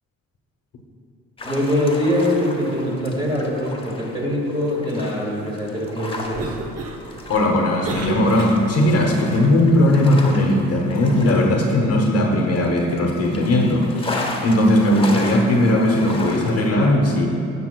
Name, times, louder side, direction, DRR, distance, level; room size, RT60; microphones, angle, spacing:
sound 1, 1.4-16.7, left 2 dB, 20° left, 0.9 m, -35 dB
voice 1, 1.4-6.6, left 1 dB, 15° right, -3 dB, 1.7 m, -23 dB
Cough, 6.1-9.0, right 4 dB, 55° right, 0.8 m, -34 dB
voice 2, 7.3-14.2 14.4-17.3, left 1 dB, 55° left, 1 dB, 0.9 m, -18 dB
10.5 x 6.9 x 2.3 m, 2.7 s
cardioid pair, 90°, 30 cm